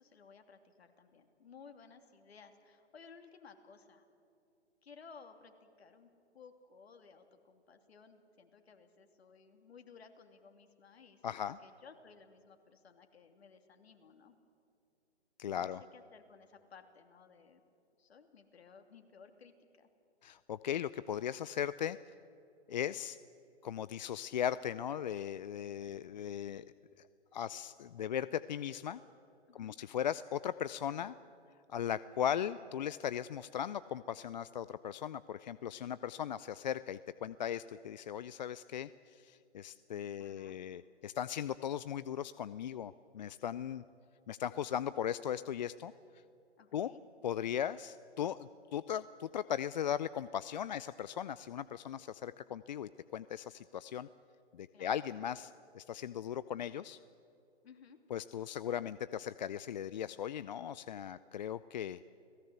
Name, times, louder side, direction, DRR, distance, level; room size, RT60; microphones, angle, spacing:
voice 1, 0.0-4.1 4.8-14.3 15.5-17.6 18.0-19.9 29.5-29.8 40.2-40.6 46.6-47.0 54.7-55.1 57.6-58.0, left 5 dB, 65° left, 6 dB, 2.9 m, -58 dB
voice 2, 11.2-11.6 15.4-15.8 20.2-22.0 22.7-23.2 23.6-26.7 27.0-27.1 27.3-29.0 29.5-31.1 31.7-43.8 44.3-45.9 46.7-46.9 47.2-54.1 54.5-57.0 58.1-62.0, left 9 dB, 40° left, 16 dB, 0.5 m, -38 dB
30.0 x 18.0 x 8.0 m, 2.6 s
hypercardioid pair, 140°, 34 cm